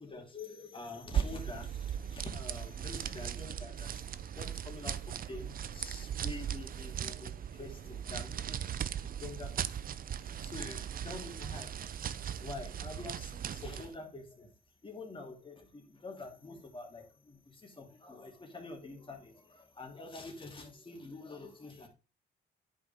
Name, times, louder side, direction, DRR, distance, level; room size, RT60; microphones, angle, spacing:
voice 1, 0.0-14.5 14.8-21.9, left 3 dB, 25° left, 2.7 m, -47 dB
sound 1, 1.1-13.9, right 9 dB, 45° right, 0.5 m, -38 dB
10.0 x 5.2 x 3.5 m
cardioid pair, 90°, 20 cm